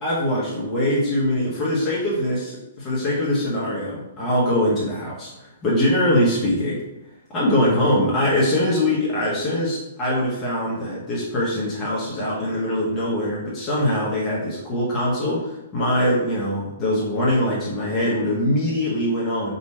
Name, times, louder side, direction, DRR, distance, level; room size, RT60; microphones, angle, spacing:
voice 1, 0.0-6.8 7.3-19.5, left 1 dB, 25° left, -7 dB, 1.5 m, -22 dB
4.1 x 2.9 x 4.4 m, 0.92 s
hypercardioid pair, 120°, 0 cm